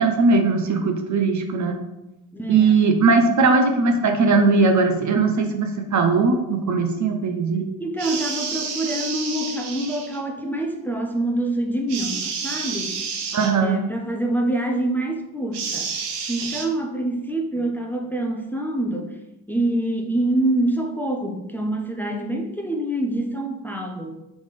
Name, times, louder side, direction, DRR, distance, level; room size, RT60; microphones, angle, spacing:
voice 1, 0.0-1.8 2.5-7.6 13.3-13.8, right 4 dB, 40° right, 4 dB, 0.7 m, -19 dB
voice 2, 2.3-2.9 7.8-13.0 13.4-19.2 19.5-24.2, right 1 dB, 5° left, 1 dB, 0.7 m, -26 dB
sound 1, 8.0-10.2 11.9-13.5 15.5-16.7, right 5 dB, 70° right, 0.9 m, -30 dB
4.1 x 3.5 x 3.2 m, 0.98 s
hypercardioid pair, 55°, 43 cm